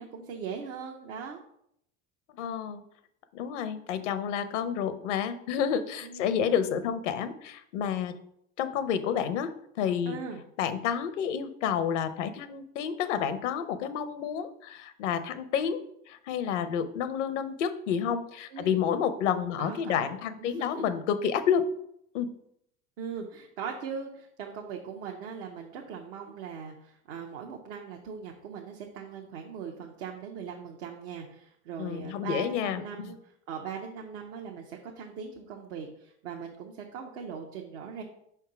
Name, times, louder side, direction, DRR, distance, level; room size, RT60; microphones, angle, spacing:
voice 1, 0.0-1.4 6.0-6.3 10.1-10.4 18.5-18.8 19.6-20.1 20.4-20.9 23.0-38.0, right 6 dB, 75° right, 0 dB, 1.0 m, -40 dB
voice 2, 2.3-2.8 3.3-8.1 8.6-10.2 10.6-15.8 16.1-21.6 22.1-22.4 31.8-33.1, left 8 dB, 80° left, 12 dB, 0.7 m, -30 dB
5.4 x 3.6 x 5.7 m, 0.72 s
hypercardioid pair, 80°, 35 cm